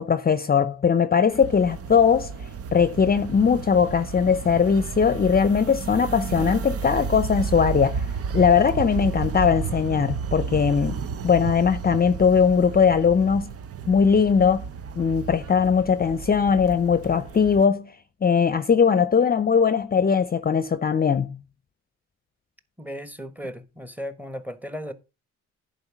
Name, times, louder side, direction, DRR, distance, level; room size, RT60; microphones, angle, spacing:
voice 1, 0.0-2.3 2.7-8.1 8.3-11.0 11.2-13.5 13.9-14.7 14.9-17.9 18.2-21.4, left 6 dB, 30° left, 0.7 m, -20 dB
sound 1, 1.3-17.6, right 6 dB, 50° right, 0.8 m, -32 dB
voice 2, 22.8-24.9, equal, 5° right, 1.3 m, -35 dB
10.5 x 4.8 x 6.0 m
cardioid pair, 90°, 30 cm